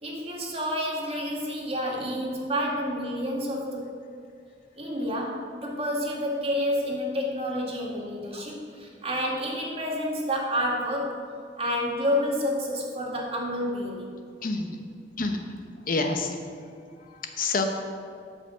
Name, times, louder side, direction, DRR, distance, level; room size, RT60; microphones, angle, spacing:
voice 1, 0.0-3.8 4.8-11.2 11.6-14.1, equal, 35° right, -2 dB, 2.0 m, -29 dB
voice 2, 14.4-14.8 15.2-15.4 15.9-16.4 16.9-17.7, left 3 dB, 50° left, 4 dB, 0.9 m, -28 dB
12.0 x 5.4 x 7.6 m, 2.3 s
head